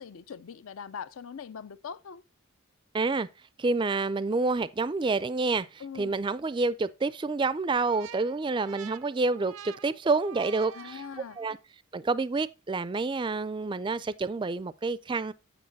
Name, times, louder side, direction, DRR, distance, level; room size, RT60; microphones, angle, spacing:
voice 1, 0.0-2.2 5.8-6.1 10.7-11.4, left 6 dB, 70° left, 0.5 m, -41 dB
voice 2, 2.9-3.3 3.6-11.0 11.4-11.6 11.9-15.3, right 3 dB, 20° right, 0.3 m, -28 dB
sound 1, 7.7-11.6, right 8 dB, 85° right, 0.6 m, -47 dB
8.6 x 6.6 x 4.0 m
head